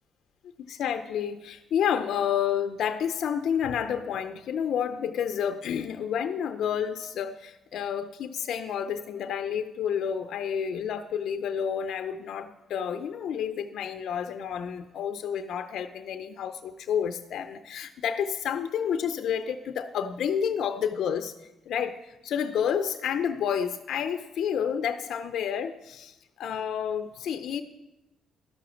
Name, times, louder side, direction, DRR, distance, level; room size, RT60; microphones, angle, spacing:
voice 1, 0.6-21.3 21.7-27.6, left 8 dB, 70° left, 7 dB, 0.6 m, -30 dB
13.0 x 5.9 x 6.3 m, 0.97 s
cardioid pair, 90°, 0 cm